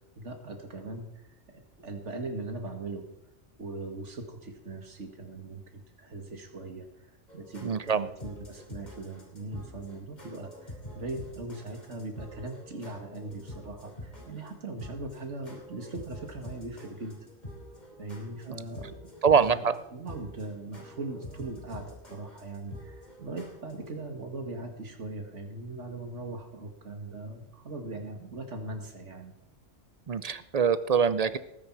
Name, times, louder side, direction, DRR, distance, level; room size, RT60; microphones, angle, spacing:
voice 1, 0.2-1.2 1.5-3.1 3.6-6.9 7.3-17.3 18.0-29.3, right 2 dB, 70° right, 4 dB, 2.3 m, -40 dB
sound 1, 7.3-23.9, left 1 dB, 35° left, 3.2 m, -47 dB
voice 2, 7.6-8.1 18.5-18.6 19.2-19.7 30.1-31.4, right 6 dB, 50° right, 14 dB, 0.5 m, -24 dB
19.0 x 9.8 x 4.7 m, 0.87 s
omnidirectional pair, 1.3 m